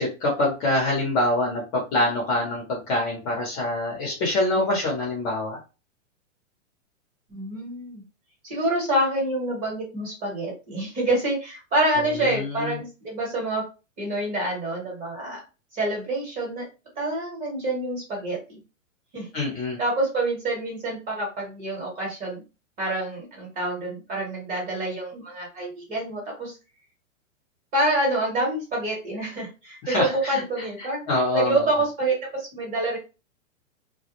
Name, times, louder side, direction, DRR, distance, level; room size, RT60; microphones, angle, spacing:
voice 1, 0.0-5.6 12.1-12.8 19.3-19.8 29.8-31.7, left 1 dB, 25° left, -1 dB, 0.6 m, -25 dB
voice 2, 7.3-8.0 8.4-13.7 14.0-15.4 15.7-16.6 17.0-18.6 19.1-19.3 19.8-22.4 22.8-26.5 27.7-31.0 31.3-33.0, right 1 dB, 20° right, -2 dB, 1.0 m, -27 dB
2.2 x 2.1 x 2.9 m, 0.31 s
hypercardioid pair, 150°, 40 cm